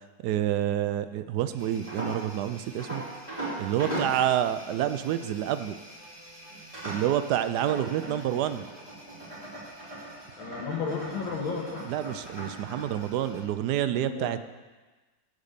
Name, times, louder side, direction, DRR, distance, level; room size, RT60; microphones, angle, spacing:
voice 1, 0.2-3.0 3.6-5.7 6.8-8.7 11.8-14.4, right 11 dB, 70° right, 12 dB, 1.0 m, -28 dB
sound 1, 1.5-13.4, right 1 dB, 15° right, 3.2 m, -40 dB
voice 2, 10.4-11.9 14.0-14.3, left 5 dB, 90° left, 1 dB, 2.2 m, -33 dB
13.5 x 5.1 x 6.7 m, 1.3 s
omnidirectional pair, 2.1 m